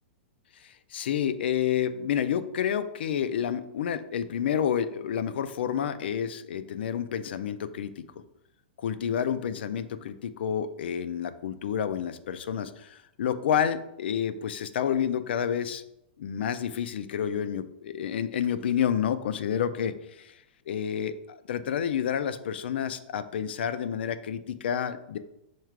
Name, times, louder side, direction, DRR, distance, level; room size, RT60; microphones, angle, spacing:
voice 1, 0.6-8.0 8.8-15.8 16.2-20.3 20.7-25.2, left 8 dB, 70° left, 12 dB, 0.4 m, -29 dB
4.5 x 2.4 x 4.6 m, 0.85 s
supercardioid pair, 170°, 6 cm